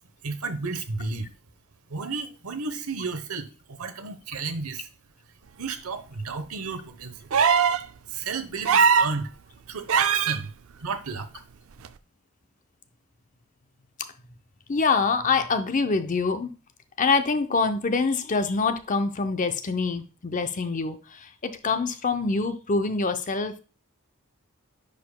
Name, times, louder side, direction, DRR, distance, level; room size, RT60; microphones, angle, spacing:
voice 1, 0.2-1.3 1.9-4.9 5.6-7.3 8.1-9.3 9.7-10.5 10.8-11.4, right 4 dB, 90° right, 0.9 m, -32 dB
sound 1, 7.3-7.8 8.6-9.1 9.9-10.4 11.8-11.9, right 6 dB, 70° right, 0.4 m, -20 dB
voice 2, 14.7-16.5 17.0-23.5, left 4 dB, 35° left, 0.6 m, -25 dB
10.0 x 4.9 x 2.2 m
head